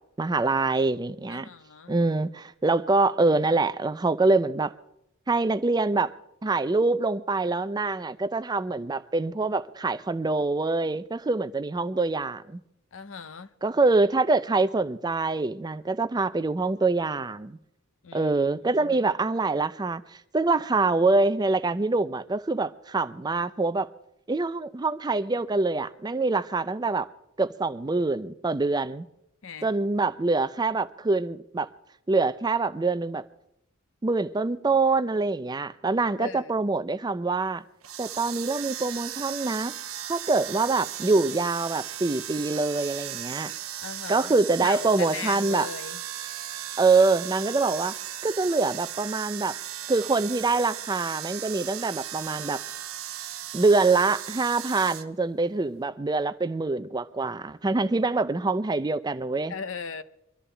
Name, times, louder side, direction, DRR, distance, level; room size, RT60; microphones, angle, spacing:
voice 1, 0.2-1.5 1.9-4.7 5.3-6.1 6.4-12.6 13.6-17.6 18.1-23.9 24.3-27.1 27.4-29.1 29.6-31.7 32.1-33.2 34.0-37.6 38.0-39.7 40.1-43.5 44.1-45.7 46.8-48.0 48.2-49.6 49.9-52.6 53.5-59.5, right 3 dB, 20° right, 0.4 m, -25 dB
voice 2, 1.3-2.0 12.9-13.5 18.0-19.1 29.4-29.7 36.2-36.6 43.8-44.3 44.6-46.0 59.5-60.0, left 5 dB, 65° left, 0.7 m, -38 dB
sound 1, 37.8-55.0, right 11 dB, 85° right, 0.8 m, -37 dB
23.5 x 13.0 x 3.3 m
head